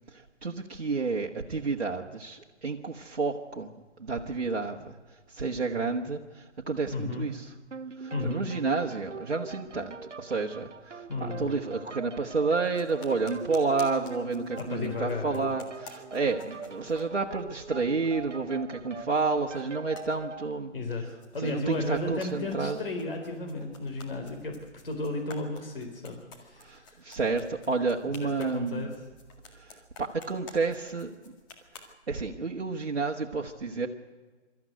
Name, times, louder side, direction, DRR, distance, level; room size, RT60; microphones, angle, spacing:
voice 1, 0.1-3.7 4.0-5.0 5.3-7.5 7.9-20.7 21.4-22.8 26.6-29.0 29.5-31.1 31.7-33.9, right 4 dB, 60° right, -1 dB, 1.6 m, -30 dB
voice 2, 6.9-7.3 8.1-8.5 11.1-11.6 14.6-15.5 20.7-21.0 21.3-24.5 24.8-27.0 28.2-28.9, left 2 dB, 50° left, 3 dB, 4.0 m, -34 dB
sound 1, 7.7-20.5, right 5 dB, 85° right, 0.8 m, -43 dB
sound 2, 12.6-17.5 17.7-18.2 18.8-19.3 19.5-20.8 21.0-31.9, left 3 dB, 15° left, 2.0 m, -52 dB
25.0 x 13.5 x 7.9 m, 1.3 s
figure-of-eight pair, 145°, 36 cm